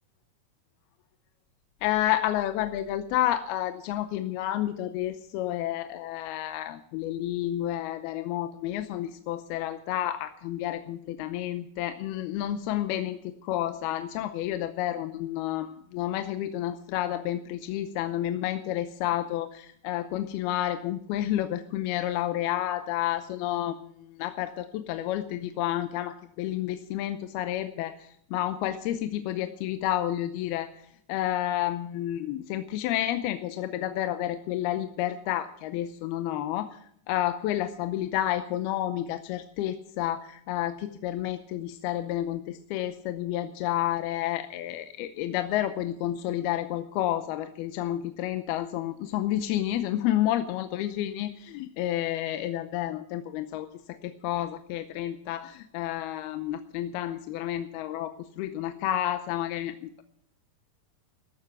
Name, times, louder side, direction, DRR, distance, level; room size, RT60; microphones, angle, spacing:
voice 1, 1.8-28.0 28.3-30.7 31.1-36.8 37.1-53.7 54.0-60.0, left 13 dB, 80° left, 9 dB, 2.6 m, -30 dB
14.5 x 12.0 x 6.0 m, 0.66 s
omnidirectional pair, 4.7 m